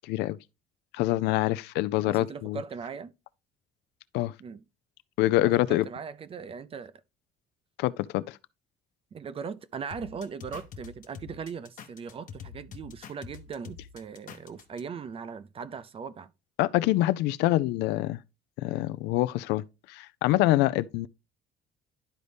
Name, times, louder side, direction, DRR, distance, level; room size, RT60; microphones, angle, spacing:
voice 1, 0.0-0.4 0.9-2.6 4.1-4.3 5.2-5.9 7.8-8.4 16.6-18.2 18.6-21.1, left 16 dB, 90° left, 0.4 m, -25 dB
voice 2, 2.0-3.1 4.4-4.6 5.4-7.0 9.1-16.3, right 6 dB, 35° right, 0.5 m, -39 dB
sound 1, 9.9-14.8, left 7 dB, 50° left, 0.9 m, -45 dB
11.0 x 4.0 x 3.3 m
cardioid pair, 110°, 17 cm